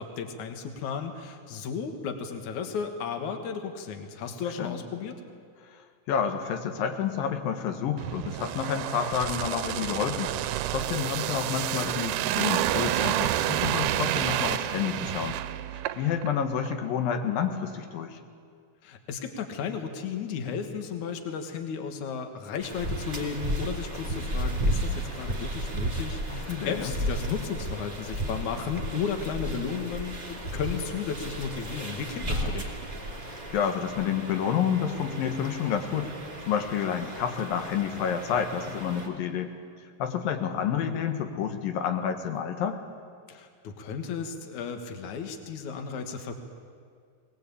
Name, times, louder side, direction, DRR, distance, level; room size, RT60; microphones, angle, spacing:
voice 1, 0.0-5.2 18.8-32.7 43.3-46.3, left 6 dB, 65° left, 6 dB, 2.8 m, -34 dB
voice 2, 5.7-10.3 10.7-15.4 16.0-18.2 26.3-26.9 32.2-32.5 33.2-36.1 36.5-39.5 40.0-42.8, left 8 dB, 90° left, 6 dB, 3.2 m, -29 dB
sound 1, 8.0-16.3 16.7-16.8, right 12 dB, 80° right, 2.2 m, -29 dB
sound 2, 22.6-39.1, right 1 dB, 15° right, 2.9 m, -34 dB
21.0 x 20.0 x 8.5 m, 2.1 s
omnidirectional pair, 3.9 m